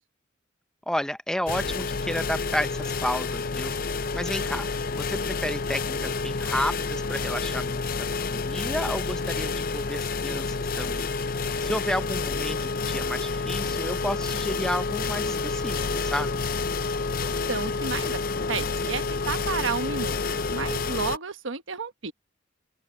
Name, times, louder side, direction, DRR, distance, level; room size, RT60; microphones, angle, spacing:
voice 1, 0.9-4.7 5.0-11.1 11.6-16.4, left 1 dB, 5° left, 0.6 m, -32 dB
sound 1, 1.5-21.2, left 4 dB, 45° left, 0.5 m, -29 dB
voice 2, 17.2-20.2 20.5-22.1, right 5 dB, 70° right, 1.1 m, -32 dB
open air
head